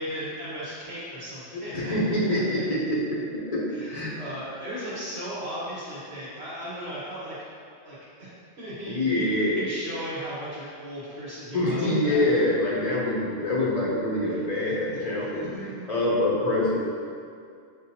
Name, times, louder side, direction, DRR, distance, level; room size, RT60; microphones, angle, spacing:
voice 1, 0.0-1.9 3.7-7.4 7.8-8.3 8.6-9.3 9.6-12.2 14.3-14.7 15.3-15.9, equal, 60° right, -10 dB, 1.5 m, -36 dB
voice 2, 1.5-3.2 3.5-4.1 4.4-4.5 8.9-9.6 11.5-16.8, left 1 dB, 40° left, -6 dB, 0.6 m, -25 dB
6.2 x 2.2 x 2.7 m, 2.2 s
omnidirectional pair, 1.3 m